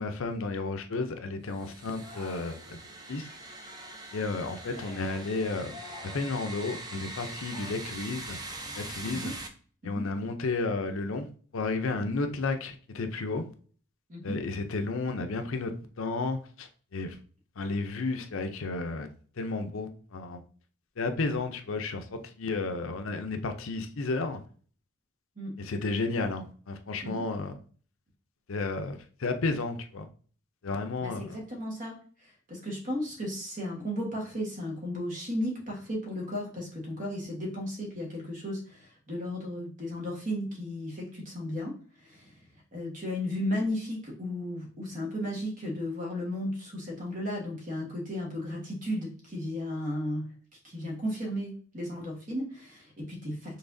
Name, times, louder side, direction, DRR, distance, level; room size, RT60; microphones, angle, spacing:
voice 1, 0.0-2.8 3.1-3.3 4.1-5.8 6.0-8.4 8.8-9.3 9.8-13.4 14.2-17.2 17.6-19.1 19.4-20.4 21.0-24.4 25.6-27.5 28.5-30.1 30.6-31.4, left 3 dB, 65° left, 0.6 m, -32 dB
sound 1, 1.5-9.5, right 2 dB, 20° right, 0.5 m, -43 dB
Singing, 1.9-2.7 2.9-7.7, left 3 dB, 5° left, 1.4 m, -50 dB
voice 2, 31.0-41.7 42.0-42.3 42.7-50.3 50.6-53.6, left 1 dB, 35° right, 1.3 m, -35 dB
5.8 x 3.4 x 2.6 m
head